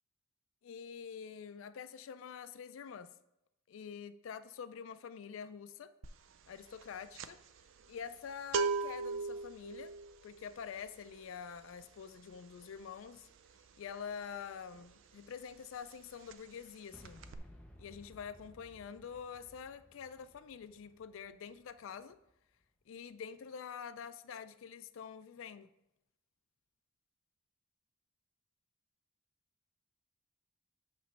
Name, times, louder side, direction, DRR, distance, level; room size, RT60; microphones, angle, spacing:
voice 1, 0.6-3.1 3.7-5.9 6.5-7.4 7.9-9.9 10.2-13.3 13.8-17.2 17.8-22.2 22.9-25.7, left 7 dB, 70° left, 12 dB, 0.3 m, -46 dB
sound 1, 6.0-6.3 6.6-15.1 15.4-15.6 15.9-16.7 17.0-17.4, right 4 dB, 60° right, 0.4 m, -39 dB
Boom, 16.9-22.8, left 1 dB, 5° left, 0.5 m, -59 dB
8.3 x 3.1 x 4.3 m, 0.85 s
head